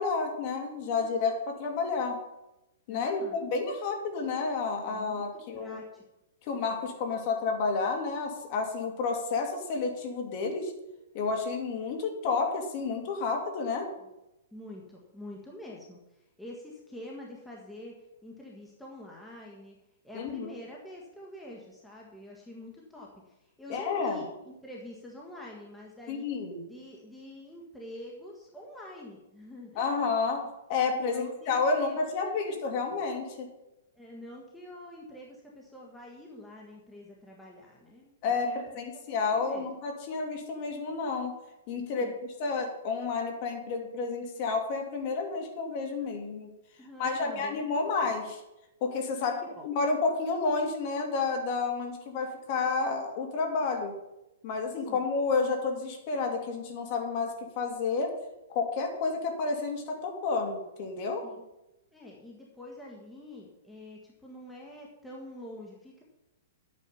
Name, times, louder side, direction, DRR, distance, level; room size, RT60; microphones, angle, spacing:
voice 1, 0.0-2.2 2.9-5.8 6.4-10.7 11.1-13.9 20.1-20.5 23.7-24.2 26.1-26.6 29.8-30.4 30.7-33.5 38.2-41.3 41.7-42.1 42.4-46.5 47.0-48.4 48.8-49.4 49.6-53.9 54.4-58.1 58.5-61.2, left 4 dB, 40° left, 3 dB, 2.5 m, -30 dB
voice 2, 2.9-3.4 4.8-6.0 14.5-17.9 18.2-19.8 20.0-26.3 26.7-29.9 30.9-32.0 32.2-32.6 33.9-38.6 38.9-39.7 41.9-42.2 46.8-47.7 49.2-49.7 54.9-55.0 61.2-61.4 61.9-66.0, left 1 dB, 5° left, -3 dB, 1.5 m, -46 dB
11.5 x 8.6 x 5.6 m, 0.93 s
hypercardioid pair, 155°, 0 cm